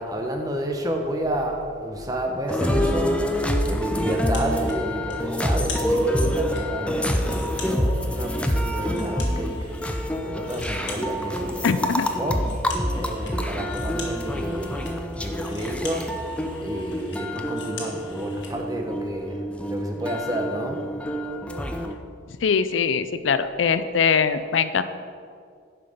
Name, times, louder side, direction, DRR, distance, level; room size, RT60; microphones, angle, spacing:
voice 1, 0.0-12.4 12.9-14.9 15.1-16.1 16.6-20.8, right 1 dB, 20° right, 2 dB, 1.0 m, -30 dB
sound 1, 2.5-21.9, equal, 5° left, 0.5 m, -27 dB
sound 2, 4.0-4.8 5.1-6.6 7.0-9.9 10.2-18.5, left 4 dB, 65° left, 1.8 m, -42 dB
voice 2, 11.6-12.1 22.4-24.8, left 6 dB, 85° left, 12 dB, 0.5 m, -22 dB
11.0 x 5.9 x 5.0 m, 2.2 s
head